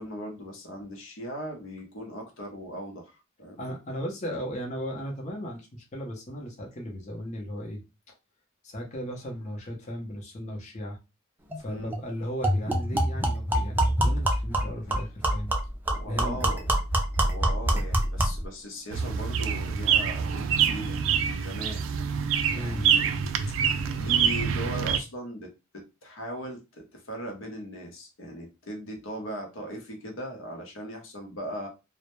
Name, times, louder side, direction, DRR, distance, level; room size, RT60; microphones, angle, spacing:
voice 1, 0.0-3.6 11.7-12.0 15.9-16.7 17.2-21.8 22.5-23.0 23.5-23.6 24.0-31.7, equal, 85° left, 2 dB, 0.7 m, -39 dB
voice 2, 3.6-7.8 8.6-11.0 11.6-15.5 16.1-16.4 22.5-22.9, equal, 35° left, 0 dB, 0.6 m, -36 dB
sound 1, 11.5-11.6 11.9-12.0 12.4-18.5, right 1 dB, 10° right, 0.4 m, -26 dB
sound 2, 18.9-25.0, right 7 dB, 75° right, 0.3 m, -26 dB
2.1 x 2.0 x 2.9 m, 0.26 s
head